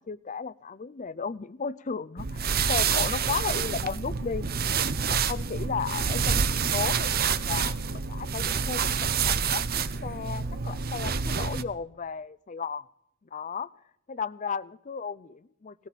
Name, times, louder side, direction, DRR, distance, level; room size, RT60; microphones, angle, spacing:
voice 1, 0.0-4.5 5.1-12.9 13.3-13.7 14.1-15.9, left 5 dB, 40° left, 0.5 m, -35 dB
sound 1, 2.2-11.6, right 6 dB, 50° right, 0.8 m, -27 dB
18.5 x 16.5 x 4.1 m
head